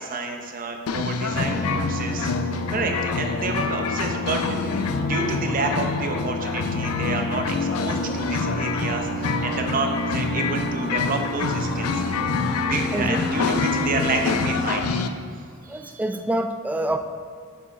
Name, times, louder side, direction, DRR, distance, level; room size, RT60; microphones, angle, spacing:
voice 1, 0.0-2.4 2.7-12.0 12.6-14.8 15.6-16.0, right 3 dB, 40° right, 4 dB, 0.8 m, -29 dB
sound 1, 0.9-15.1, left 5 dB, 80° left, 0.4 m, -27 dB
sound 2, 1.3-14.7, left 2 dB, 45° left, 0.7 m, -30 dB
voice 2, 15.7-17.0, right 1 dB, 5° right, 7 dB, 0.3 m, -26 dB
6.8 x 5.6 x 4.6 m, 2.3 s
head